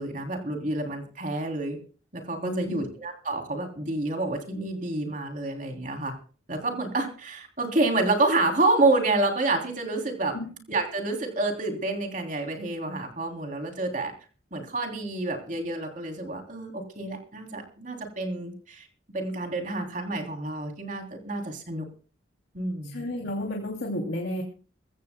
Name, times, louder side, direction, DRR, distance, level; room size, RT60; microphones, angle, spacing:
voice 1, 0.0-1.8 2.1-6.1 6.5-10.4 10.7-14.1 14.5-18.9 19.1-21.9 22.5-23.0, right 2 dB, 45° right, 3 dB, 3.1 m, -28 dB
voice 2, 2.4-2.8 10.3-10.5 22.8-24.4, left 1 dB, 75° left, 0 dB, 2.8 m, -31 dB
23.0 x 16.0 x 2.2 m, 0.39 s
head